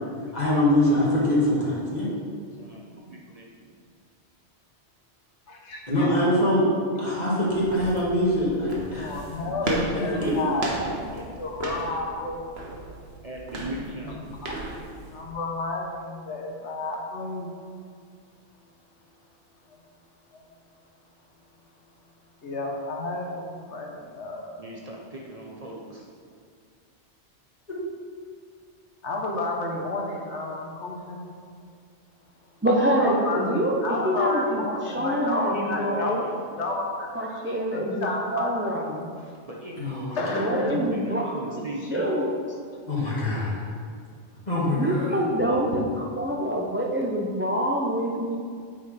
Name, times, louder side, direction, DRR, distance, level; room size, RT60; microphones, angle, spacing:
voice 1, 0.3-2.1 5.9-6.7 7.0-9.2 9.6-10.3 39.8-40.0 42.9-43.6 44.5-45.2 46.3-46.4, left 1 dB, 35° left, -6 dB, 1.9 m, -24 dB
voice 2, 2.6-3.8 9.5-9.6 10.1-11.3 13.2-14.3 24.6-26.1 35.2-36.5 39.2-40.1 40.6-42.0 44.8-45.7, right 1 dB, 40° right, -2 dB, 0.8 m, -39 dB
voice 3, 5.5-6.1 9.0-10.7 11.0-11.1 11.4-12.5 14.4-14.5 15.1-17.5 20.3-20.4 22.4-24.5 29.0-31.2 33.0-36.1 36.6-37.4 37.7-38.7 40.2-40.8, left 2 dB, 75° left, 0 dB, 1.3 m, -31 dB
sound 1, 7.5-15.3, right 2 dB, 65° right, 1.3 m, -35 dB
voice 4, 32.6-36.2 37.1-39.1 40.3-41.6 41.9-42.3 44.6-48.4, equal, 15° right, -1 dB, 0.4 m, -26 dB
8.1 x 4.3 x 4.9 m, 2.2 s
omnidirectional pair, 1.2 m